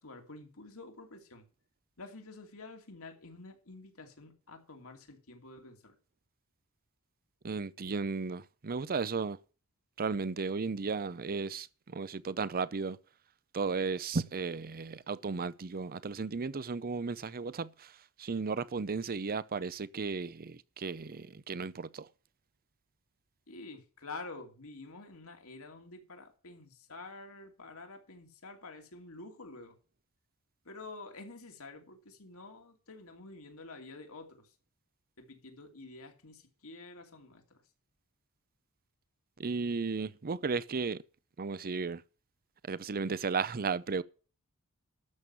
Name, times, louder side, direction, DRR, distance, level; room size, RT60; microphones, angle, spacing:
voice 1, 0.0-1.4 2.0-5.9 23.5-29.8 30.6-34.5 35.2-37.6, left 3 dB, 70° left, 2.7 m, -49 dB
voice 2, 7.4-9.4 10.0-13.0 13.5-17.9 18.2-22.1 39.4-41.0 41.4-42.0 42.6-44.0, right 4 dB, 40° right, 0.6 m, -34 dB
13.0 x 7.1 x 6.1 m
head